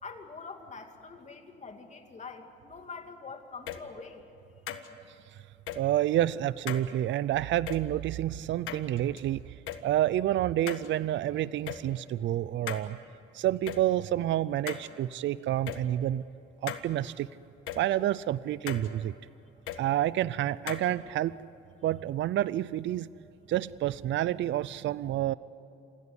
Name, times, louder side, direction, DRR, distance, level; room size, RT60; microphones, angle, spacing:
voice 1, 0.0-4.3, left 4 dB, 35° left, 5 dB, 2.8 m, -45 dB
sound 1, 3.7-3.8 4.7-4.9 5.7-5.8 6.7-6.9 7.7-7.8 8.7-9.2 9.7-9.8 10.7-10.9 11.7-11.8 12.7-12.8 13.7-13.8 14.7-14.9 15.7-15.8 16.7-16.8 17.7-17.8 18.7-18.9 19.7-19.8 20.7-20.8, left 11 dB, 90° left, 1.5 m, -37 dB
voice 2, 5.8-9.4 9.8-13.0 13.3-16.2 16.6-17.3 17.7-19.1 19.8-21.3 21.8-23.1 23.5-25.3, right 12 dB, 70° right, 19 dB, 0.5 m, -29 dB
28.0 x 16.0 x 9.7 m, 2.9 s
cardioid pair, 90°, 20 cm